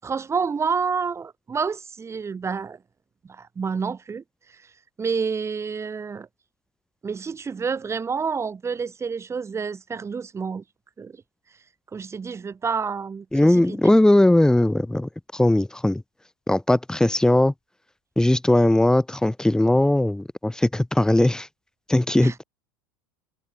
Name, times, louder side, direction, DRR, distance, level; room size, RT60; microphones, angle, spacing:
voice 1, 0.0-2.8 3.3-4.2 4.5-4.6 5.0-6.3 7.0-10.6 11.0-11.1 11.9-13.9 22.2-22.3, right 5 dB, 20° right, 7.3 m, -29 dB
voice 2, 13.3-16.0 16.5-17.5 18.2-21.5 21.9-22.3, left 1 dB, 5° left, 7.6 m, -19 dB
hypercardioid pair, 85°, 12 cm